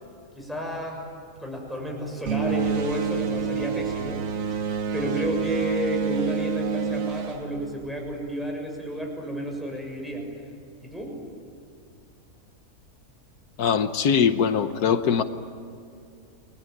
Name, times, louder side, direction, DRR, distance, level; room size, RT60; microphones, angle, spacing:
voice 1, 0.3-1.0 1.4-4.6 4.9-10.3 10.8-11.2, equal, ahead, 0 dB, 6.9 m, -31 dB
sound 1, 2.3-8.3, right 6 dB, 60° right, 1.5 m, -28 dB
voice 2, 13.6-15.2, left 7 dB, 90° left, 9 dB, 1.5 m, -22 dB
30.0 x 21.5 x 9.3 m, 2.5 s
omnidirectional pair, 1.6 m